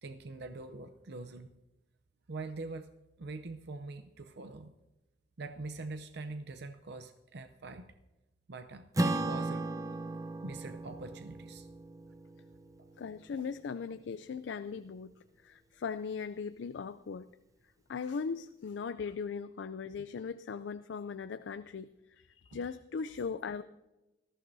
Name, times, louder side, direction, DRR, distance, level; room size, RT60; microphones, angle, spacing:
voice 1, 0.0-1.5 2.3-2.9 3.2-4.7 5.4-7.9 8.5-9.7 10.4-11.7 12.8-12.9, right 3 dB, 65° right, 8 dB, 0.6 m, -44 dB
Acoustic guitar / Strum, 9.0-13.7, right 2 dB, 20° right, 0.6 m, -36 dB
voice 2, 13.0-15.1 15.4-17.3 17.9-21.9 22.2-23.6, left 5 dB, 75° left, 12 dB, 0.4 m, -39 dB
19.5 x 14.5 x 2.7 m, 0.99 s
head